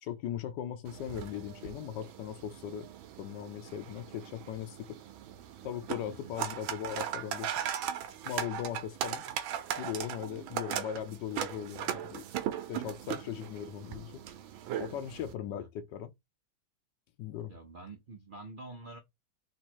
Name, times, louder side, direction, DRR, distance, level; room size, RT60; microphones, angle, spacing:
voice 1, 0.0-2.9 3.2-5.0 5.6-7.5 8.2-9.2 9.8-12.2 12.7-14.2 14.8-16.1 17.2-17.5, left 10 dB, 70° left, 1.1 m, -39 dB
sound 1, 0.9-15.3, right 10 dB, 85° right, 1.5 m, -39 dB
voice 2, 6.1-6.4 15.5-15.7 17.5-19.0, right 2 dB, 65° right, 0.5 m, -47 dB
3.7 x 2.9 x 4.4 m
omnidirectional pair, 2.2 m